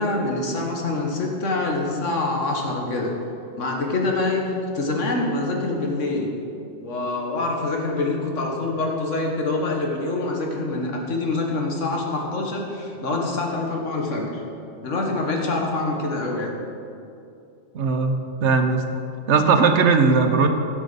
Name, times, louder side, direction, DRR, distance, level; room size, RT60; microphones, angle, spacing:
voice 1, 0.0-3.1 3.6-6.3 6.8-14.4 14.8-16.5, left 2 dB, 80° left, 0 dB, 1.7 m, -25 dB
voice 2, 17.7-18.8 19.3-20.5, right 4 dB, 70° right, 6 dB, 1.0 m, -18 dB
12.0 x 6.2 x 5.3 m, 2.6 s
omnidirectional pair, 1.2 m